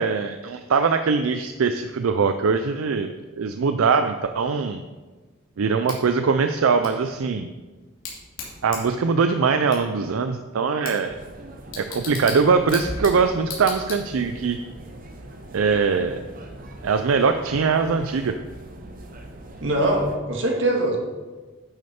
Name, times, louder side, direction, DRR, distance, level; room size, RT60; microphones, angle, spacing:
voice 1, 0.0-4.8 5.6-7.5 8.6-11.1 11.8-14.6 15.5-16.2 16.8-18.4, right 5 dB, 80° right, 8 dB, 0.4 m, -22 dB
Bicycle / Tick, 5.9-14.4, left 4 dB, 75° left, 2.7 m, -39 dB
sound 1, 11.0-20.2, right 1 dB, 40° right, 0.9 m, -40 dB
voice 2, 19.6-21.0, right 1 dB, 65° right, 0 dB, 1.8 m, -22 dB
10.5 x 6.4 x 4.4 m, 1.3 s
head